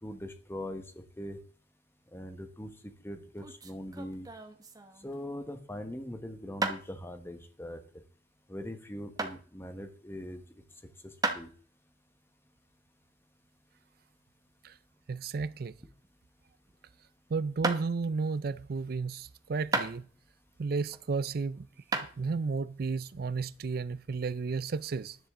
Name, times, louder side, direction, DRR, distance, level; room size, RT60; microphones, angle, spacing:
voice 1, 0.0-1.4 2.1-2.7 3.0-4.3 5.0-7.8 8.5-10.4 11.2-11.5, left 1 dB, 15° left, 1.3 m, -41 dB
sound 1, 3.2-5.3 6.6-6.8 9.2-9.4 11.2-11.5 14.7-16.1 16.4-16.8 17.6-17.8 19.7-20.3 20.9-21.4 21.9-22.1, right 3 dB, 20° right, 1.2 m, -34 dB
voice 2, 15.1-15.7 17.3-20.1 20.6-21.7 21.9-25.2, right 4 dB, 60° right, 0.4 m, -33 dB
13.5 x 10.5 x 3.7 m
head